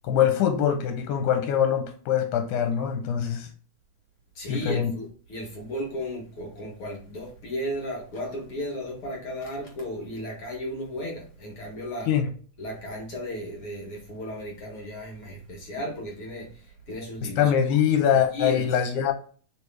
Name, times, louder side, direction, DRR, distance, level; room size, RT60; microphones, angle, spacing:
voice 1, 0.0-3.5 4.5-4.9 12.1-12.3 17.4-19.1, left 9 dB, 80° left, 2.0 m, -23 dB
voice 2, 4.3-12.1 12.6-18.8, equal, 60° left, 1.5 m, -35 dB
4.6 x 3.3 x 3.3 m
omnidirectional pair, 3.7 m